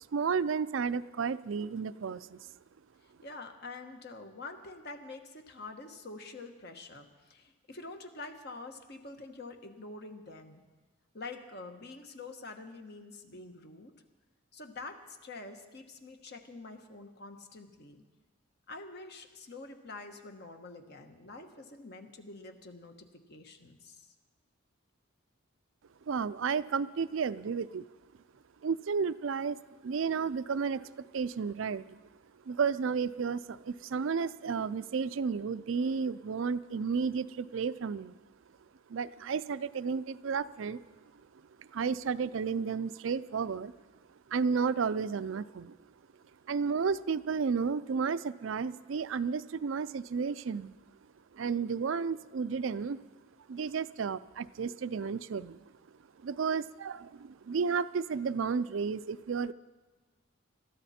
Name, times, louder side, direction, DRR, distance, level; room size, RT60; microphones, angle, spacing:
voice 1, 0.1-2.5 26.1-27.9 28.6-29.6 29.8-32.0 32.5-38.1 38.9-40.8 41.6-43.7 44.3-45.8 46.5-50.8 51.3-53.0 53.5-55.6 56.2-59.5, right 5 dB, 70° right, 15 dB, 0.4 m, -32 dB
voice 2, 3.0-10.6 11.1-13.9 14.5-18.0 18.7-24.1, left 3 dB, 50° left, 6 dB, 1.3 m, -46 dB
22.0 x 13.5 x 4.3 m, 1.2 s
head